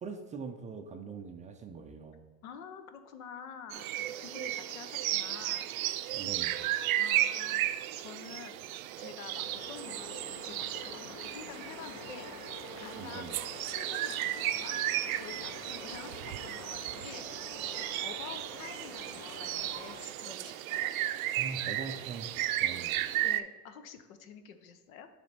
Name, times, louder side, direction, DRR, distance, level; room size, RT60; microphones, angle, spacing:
voice 1, 0.0-2.2 6.1-6.6 13.0-13.3 21.4-23.0, right 5 dB, 20° right, 5 dB, 0.4 m, -42 dB
voice 2, 2.4-5.7 7.0-7.6 8.0-8.6 9.0-14.8 15.1-17.2 18.0-20.9 23.2-25.1, left 7 dB, 80° left, 9 dB, 0.9 m, -48 dB
sound 1, 3.7-23.4, right 13 dB, 80° right, 0.5 m, -34 dB
sound 2, 9.3-20.1, left 5 dB, 35° left, 0.8 m, -48 dB
9.2 x 3.4 x 4.2 m, 1.3 s
hypercardioid pair, 110°, 41 cm